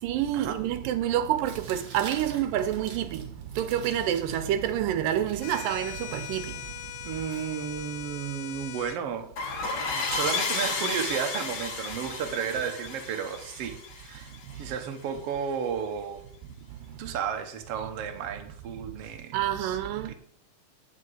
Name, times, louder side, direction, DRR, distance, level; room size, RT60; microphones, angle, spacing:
voice 1, 0.0-3.3 3.6-6.6 19.3-20.1, right 11 dB, 85° right, 2.4 m, -28 dB
Tearing, 1.4-8.1, right 4 dB, 40° right, 2.1 m, -48 dB
sound 1, 5.4-9.0, left 13 dB, 85° left, 1.7 m, -40 dB
voice 2, 7.1-9.3 9.6-14.3 14.6-16.2 17.0-19.8 20.1-20.2, right 7 dB, 60° right, 1.8 m, -33 dB
sound 2, 9.4-14.7, left 4 dB, 55° left, 3.1 m, -32 dB
10.5 x 6.2 x 7.8 m
omnidirectional pair, 3.8 m